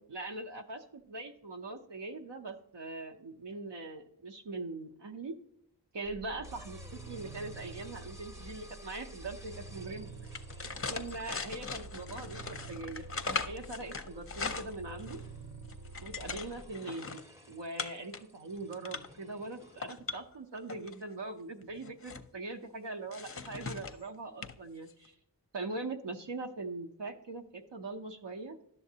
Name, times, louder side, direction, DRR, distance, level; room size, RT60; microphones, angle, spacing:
voice 1, 0.0-5.4 5.9-10.1 10.9-15.2 16.0-17.2 17.5-25.1 25.5-28.6, right 3 dB, 80° right, 4 dB, 0.7 m, -41 dB
sound 1, 6.1-16.7, right 2 dB, 45° right, 0.6 m, -48 dB
sound 2, 6.4-19.9, equal, 5° right, 0.7 m, -57 dB
sound 3, 10.2-15.3 15.6-17.2 17.8-18.2 18.6-19.2 19.7-21.0 21.6-22.3 23.1-24.0 24.4-24.6 24.9-25.1, left 4 dB, 35° left, 0.5 m, -40 dB
11.0 x 7.0 x 2.7 m, 0.74 s
wide cardioid pair, 55°, 42 cm